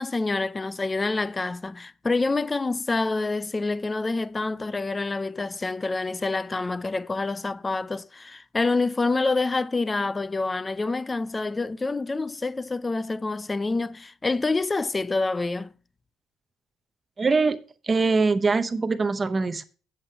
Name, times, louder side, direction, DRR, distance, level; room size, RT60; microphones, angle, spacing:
voice 1, 0.0-15.7, left 3 dB, 15° left, 0.3 m, -27 dB
voice 2, 17.2-17.6 17.8-19.6, right 4 dB, 20° right, 0.7 m, -23 dB
8.2 x 7.6 x 4.4 m
cardioid pair, 175°, 0 cm